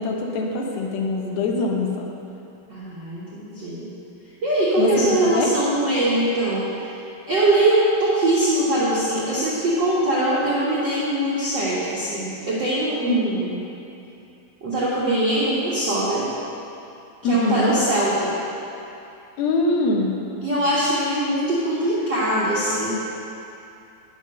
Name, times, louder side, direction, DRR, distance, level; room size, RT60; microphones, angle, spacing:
voice 1, 0.0-2.1 4.8-5.5 13.1-13.4 17.2-17.8 19.4-20.2, left 2 dB, 75° left, 0 dB, 2.8 m, -23 dB
voice 2, 2.7-3.9 4.4-7.0 7.3-13.6 14.6-16.2 17.2-18.3 20.4-22.9, right 1 dB, 85° right, -9 dB, 0.9 m, -22 dB
9.4 x 6.3 x 6.5 m, 2.7 s
omnidirectional pair, 4.4 m